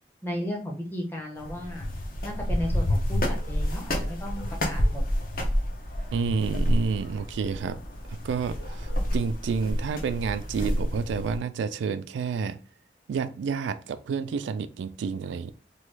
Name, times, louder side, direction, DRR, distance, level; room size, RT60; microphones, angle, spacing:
voice 1, 0.2-1.9 2.2-5.0, equal, 10° left, 0.6 m, -35 dB
sound 1, 1.4-11.4, equal, 50° left, 0.6 m, -29 dB
voice 2, 6.1-7.8 8.1-12.6 13.1-15.5, right 5 dB, 90° right, 0.3 m, -30 dB
3.0 x 2.3 x 3.2 m
head